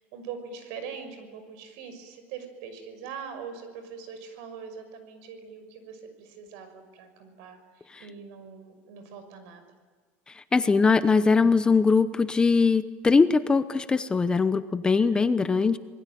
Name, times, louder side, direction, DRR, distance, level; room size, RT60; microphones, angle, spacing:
voice 1, 0.0-9.6 14.9-15.6, right 6 dB, 70° right, 9 dB, 6.1 m, -42 dB
voice 2, 10.3-15.8, left 4 dB, 15° left, 12 dB, 0.8 m, -21 dB
27.5 x 21.0 x 9.3 m, 1.5 s
supercardioid pair, 145°, 6 cm